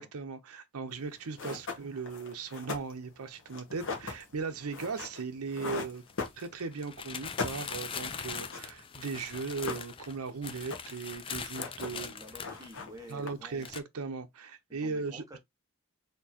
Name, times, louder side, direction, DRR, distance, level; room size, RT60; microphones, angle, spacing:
voice 1, 0.0-6.0 6.4-12.1 13.1-15.2, right 4 dB, 80° right, 0.6 m, -38 dB
sound 1, 1.0-1.1 1.4-6.8 7.1-9.0 9.3-10.2 10.5-11.1 11.4-12.1 12.4-13.6, left 4 dB, 60° left, 1.3 m, -40 dB
sound 2, 4.4-4.5 6.0-13.2 13.6-13.8, left 6 dB, 25° left, 0.4 m, -41 dB
voice 2, 11.9-13.7 14.7-15.4, right 1 dB, 15° right, 1.0 m, -50 dB
4.3 x 3.3 x 2.7 m
head